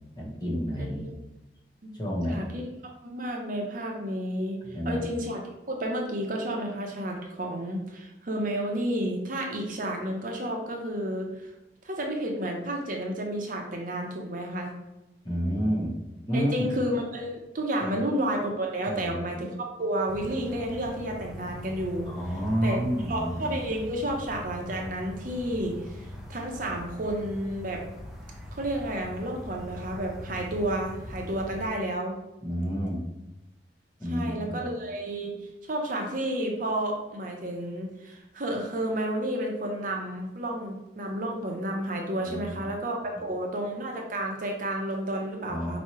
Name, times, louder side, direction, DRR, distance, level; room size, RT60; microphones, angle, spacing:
voice 1, 0.2-1.1 1.9-2.4 4.7-5.0 15.2-16.0 16.3-16.7 17.8-18.1 18.9-19.2 22.0-23.6 32.4-33.0 34.0-34.6 42.2-42.6 45.5-45.8, equal, 25° left, -4 dB, 1.1 m, -29 dB
voice 2, 2.3-2.7 3.0-4.6 4.8-5.4 5.7-11.5 11.8-14.7 16.3-22.1 22.6-22.8 23.1-27.8 28.5-32.2 34.1-35.3 35.6-45.8, right 1 dB, 50° right, 1 dB, 0.7 m, -31 dB
sound 1, 20.1-31.7, left 1 dB, 5° right, 0.5 m, -41 dB
4.5 x 3.1 x 2.9 m, 0.96 s
head